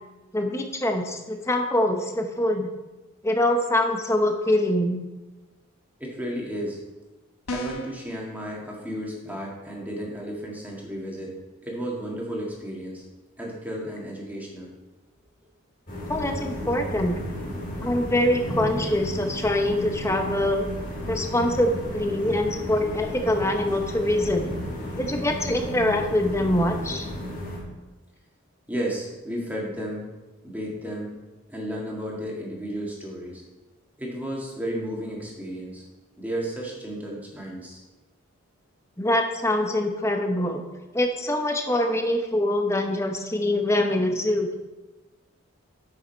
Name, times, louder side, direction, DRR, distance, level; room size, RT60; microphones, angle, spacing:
voice 1, 0.3-2.7 3.2-5.0 16.1-17.2 17.8-20.7 21.1-24.6 25.0-27.1 39.0-40.6 40.9-44.5, left 1 dB, 15° left, 4 dB, 0.8 m, -24 dB
voice 2, 6.0-6.8 7.5-11.4 11.6-13.0 13.4-14.7 28.7-30.1 30.4-31.1 31.5-33.4 34.0-35.9 36.2-37.8, equal, 10° right, -3 dB, 1.8 m, -33 dB
sound 1, 7.5-8.0, left 2 dB, 90° left, 1.0 m, -32 dB
sound 2, 15.9-27.6, equal, 40° left, 2.1 m, -33 dB
8.5 x 6.4 x 4.5 m, 1.2 s
head